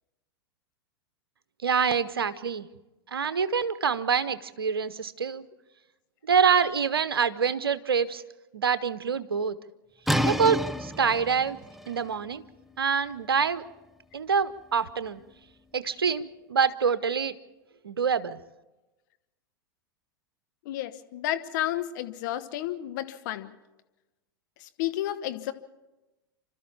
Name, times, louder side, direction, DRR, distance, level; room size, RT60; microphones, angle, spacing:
voice 1, 1.6-2.7 3.1-5.5 6.2-8.2 8.5-9.6 10.3-11.6 11.9-12.4 12.8-13.6 14.1-15.2 15.7-17.3 17.8-18.4, right 6 dB, 75° right, 15 dB, 0.9 m, -26 dB
sound 1, 10.1-15.7, equal, ahead, 0.6 m, -33 dB
voice 2, 20.6-23.5 24.6-25.5, left 13 dB, 55° left, 9 dB, 1.2 m, -31 dB
29.0 x 13.0 x 7.2 m, 1.1 s
figure-of-eight pair, 90°, 12 cm